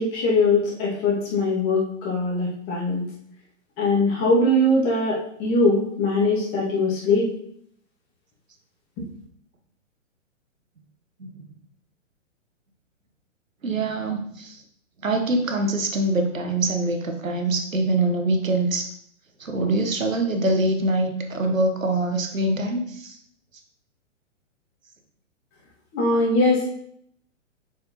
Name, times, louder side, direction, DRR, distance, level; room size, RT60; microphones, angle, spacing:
voice 1, 0.0-3.0 3.8-7.3 25.9-26.6, left 2 dB, 30° left, -4 dB, 2.1 m, -21 dB
voice 2, 13.6-14.6 15.0-18.9 19.4-23.2, right 2 dB, 90° right, 4 dB, 1.2 m, -24 dB
7.1 x 4.8 x 3.0 m, 0.68 s
figure-of-eight pair, 120°, 39 cm